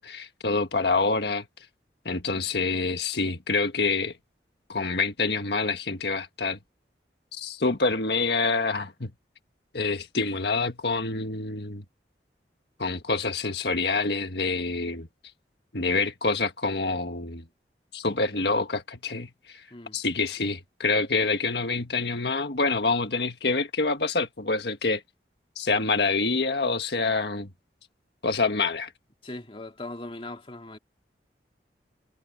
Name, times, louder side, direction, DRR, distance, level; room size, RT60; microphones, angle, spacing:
voice 1, 0.0-1.4 2.0-4.1 4.7-6.6 7.3-9.1 9.7-11.8 12.8-15.1 15.7-17.4 17.9-19.6 19.9-25.0 25.5-27.5 28.2-28.9, left 3 dB, 70° left, 1.6 m, -26 dB
voice 2, 19.7-20.0 29.2-30.8, left 2 dB, 30° left, 2.2 m, -39 dB
head